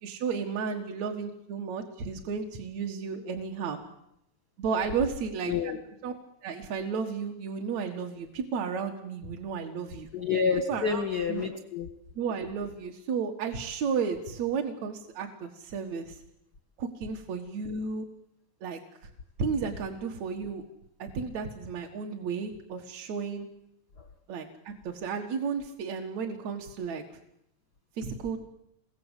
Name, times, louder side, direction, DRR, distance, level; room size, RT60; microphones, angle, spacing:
voice 1, 0.0-3.8 4.6-5.7 6.0-6.1 6.4-10.1 10.7-11.0 11.3-11.4 12.2-16.2 16.8-18.1 18.6-18.8 19.4-20.6 21.0-23.5 24.3-27.0 28.0-28.4, right 5 dB, 55° right, 3 dB, 2.4 m, -33 dB
voice 2, 5.5-5.8 10.1-11.9, left 6 dB, 50° left, 6 dB, 1.2 m, -28 dB
28.0 x 22.5 x 8.2 m, 0.81 s
omnidirectional pair, 4.3 m